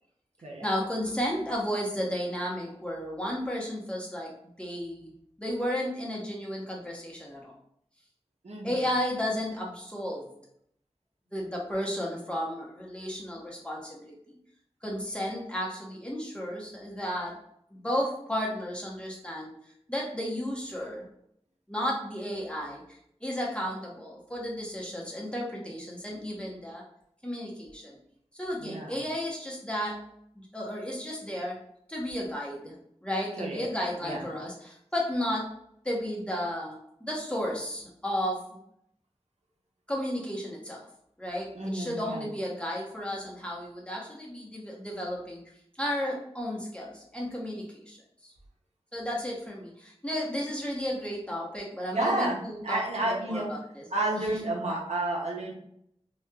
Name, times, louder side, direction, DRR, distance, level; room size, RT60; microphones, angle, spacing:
voice 1, 0.6-4.3 4.6-5.1 5.4-7.5 8.6-10.3 11.3-14.4 14.8-17.4 17.7-19.5 19.9-21.0 21.7-22.8 23.2-26.8 27.2-28.0 28.3-30.0 30.3-31.6 31.9-32.7 33.0-35.5 35.8-38.4 39.9-40.8 41.2-45.4 45.8-48.0 48.2-48.3 48.9-53.9, equal, 10° left, -3 dB, 0.8 m, -33 dB
voice 2, 8.4-8.8 28.6-28.9 33.4-33.7 34.0-34.2 41.5-42.3 51.9-53.5 53.9-55.5, right 2 dB, 85° right, -2 dB, 0.7 m, -31 dB
3.1 x 2.3 x 2.2 m, 0.71 s
wide cardioid pair, 50°, 11 cm